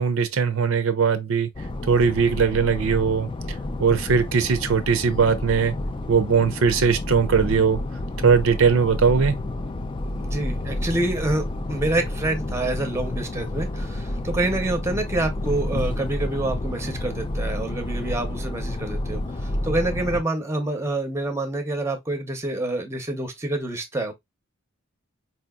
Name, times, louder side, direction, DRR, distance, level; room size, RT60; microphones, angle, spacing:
voice 1, 0.0-1.5 1.9-3.3 3.8-5.7 6.1-7.8 8.2-9.3, right 6 dB, 70° right, 0.5 m, -20 dB
sound 1, 1.5-20.2, left 1 dB, 25° left, 0.4 m, -30 dB
voice 2, 10.1-24.1, right 2 dB, 15° right, 0.6 m, -27 dB
4.4 x 2.8 x 2.2 m
head